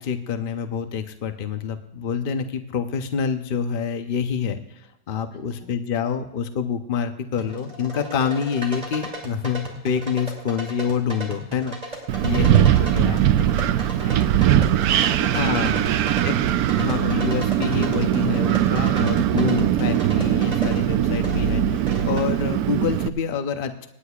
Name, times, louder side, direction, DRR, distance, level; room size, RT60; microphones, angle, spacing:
voice 1, 0.0-4.8 5.1-13.2 15.3-15.8 16.2-16.4 16.8-23.9, left 7 dB, 60° left, 7 dB, 0.5 m, -27 dB
voice 2, 5.3-5.7 12.6-16.2, left 3 dB, 35° left, -4 dB, 6.4 m, -44 dB
sound 1, 7.4-22.3, equal, 20° right, 2.7 m, -36 dB
Wind, 12.1-23.1, right 11 dB, 75° right, 0.9 m, -20 dB
27.0 x 9.8 x 2.4 m, 0.91 s
omnidirectional pair, 2.0 m